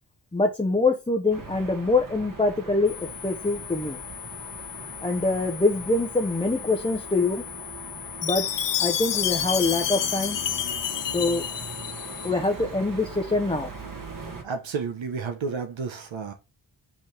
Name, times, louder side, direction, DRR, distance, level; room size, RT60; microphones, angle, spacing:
voice 1, 0.3-4.0 5.0-7.4 8.2-10.4 11.1-11.4 12.2-13.7, left 3 dB, 10° left, 0.7 m, -24 dB
sound 1, 1.3-14.4, right 3 dB, 45° right, 1.6 m, -40 dB
sound 2, 2.9-12.3, left 16 dB, 85° left, 1.1 m, -41 dB
Chime, 8.2-12.3, left 10 dB, 70° left, 0.7 m, -28 dB
voice 2, 14.2-16.3, right 5 dB, 85° right, 1.3 m, -32 dB
5.5 x 5.2 x 3.4 m
wide cardioid pair, 130°, 45 cm